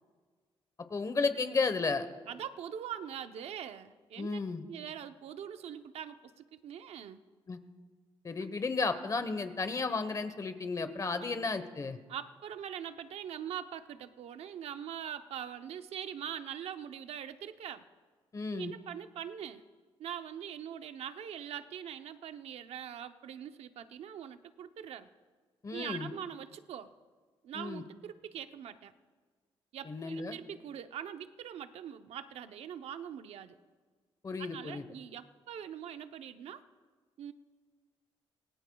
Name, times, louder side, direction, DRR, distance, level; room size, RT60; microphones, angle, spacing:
voice 1, 0.9-2.1 4.2-4.6 7.5-7.6 8.2-12.0 18.3-18.7 25.6-26.1 27.5-27.8 29.8-30.4 34.2-34.8, left 4 dB, 30° left, 10 dB, 1.1 m, -33 dB
voice 2, 2.3-4.4 4.7-7.2 11.2-11.3 12.1-17.8 18.5-19.6 20.0-25.1 25.7-26.9 27.4-28.9 29.7-33.6 34.4-36.6 37.2-37.3, right 9 dB, 75° right, 9 dB, 0.8 m, -43 dB
25.5 x 18.5 x 2.3 m, 1.5 s
cardioid pair, 105°, 11 cm